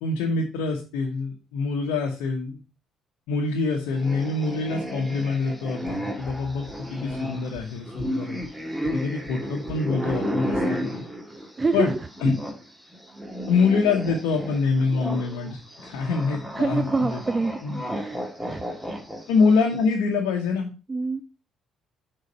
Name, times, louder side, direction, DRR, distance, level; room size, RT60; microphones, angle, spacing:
voice 1, 0.0-2.6 3.3-8.5 8.8-11.0 11.7-11.9 12.2-12.3 13.5-17.2 17.6-17.8 19.3-20.7, left 4 dB, 75° left, 0 dB, 1.0 m, -25 dB
sound 1, 3.9-12.6 12.9-19.7, equal, 5° right, 1.7 m, -32 dB
sound 2, 5.9-6.0 6.3-6.4 6.7-6.8 7.1-7.2 7.5-7.6 8.0-8.1 8.4-8.5 8.8-8.9 9.2-9.3 9.7-9.8 10.1-10.2 10.5-10.6, right 3 dB, 60° right, 2.3 m, -41 dB
sound 3, 6.2-7.7, left 4 dB, 15° left, 4.1 m, -45 dB
voice 2, 16.6-17.6 17.9-18.2 18.5-18.6 20.9-21.2, right 3 dB, 30° right, 11 dB, 0.5 m, -25 dB
6.5 x 4.0 x 5.3 m, 0.31 s
hypercardioid pair, 50°, 0 cm